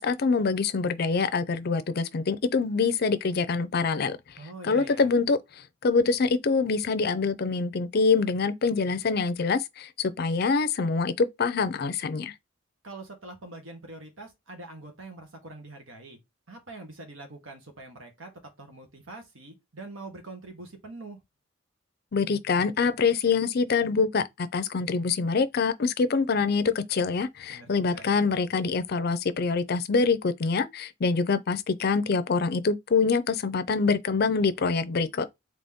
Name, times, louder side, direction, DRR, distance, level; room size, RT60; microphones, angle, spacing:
voice 1, 0.0-4.2 4.6-5.4 5.8-12.3 22.1-35.3, left 4 dB, 50° left, 0.5 m, -25 dB
voice 2, 4.4-5.1 12.8-16.2 16.5-18.3 18.6-21.2 27.5-28.2, right 2 dB, 85° right, 1.5 m, -44 dB
4.1 x 3.0 x 3.5 m
head